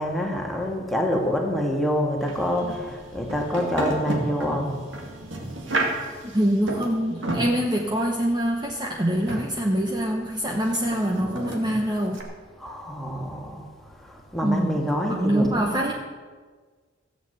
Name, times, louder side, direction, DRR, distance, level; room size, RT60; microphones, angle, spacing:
voice 1, 0.0-4.7 12.6-13.7 14.0-15.9, equal, ahead, 0 dB, 1.9 m, -27 dB
sound 1, 2.2-12.2, right 1 dB, 65° right, 2.3 m, -33 dB
voice 2, 6.2-12.2 14.4-15.9, equal, 20° right, 0 dB, 1.0 m, -25 dB
15.5 x 7.7 x 8.0 m, 1.5 s
head